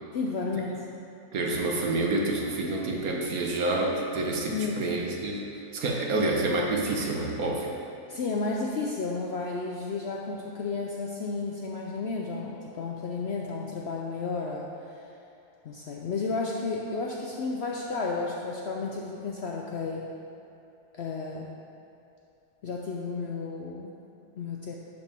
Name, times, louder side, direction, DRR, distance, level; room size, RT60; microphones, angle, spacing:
voice 1, 0.1-0.7 4.5-4.8 6.1-6.3 8.1-15.0 15.6-20.1 20.9-21.5 22.6-23.9 24.4-24.8, left 4 dB, 65° left, -1 dB, 0.7 m, -32 dB
voice 2, 1.3-5.4 5.7-7.7, right 2 dB, 70° right, -1 dB, 1.4 m, -28 dB
11.5 x 5.2 x 3.5 m, 2.7 s
omnidirectional pair, 1.6 m